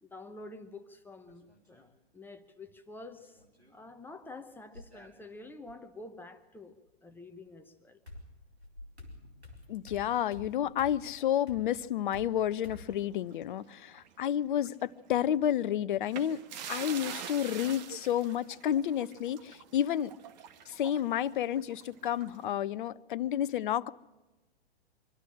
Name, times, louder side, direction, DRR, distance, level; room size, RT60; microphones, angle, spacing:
voice 1, 0.0-3.4 3.7-6.8 7.0-8.0, left 2 dB, 5° left, 0.8 m, -48 dB
sound 1, 1.3-1.9 3.2-3.8 4.7-5.8 7.5-7.6 8.1-13.0, left 2 dB, 90° right, 4.5 m, -50 dB
voice 2, 9.7-20.1 20.7-23.9, left 10 dB, 55° left, 0.7 m, -31 dB
sound 2, 12.7-14.2 14.6-14.7 16.0-22.5, right 8 dB, 45° right, 1.5 m, -45 dB
24.5 x 13.0 x 8.7 m
figure-of-eight pair, 115°, 31 cm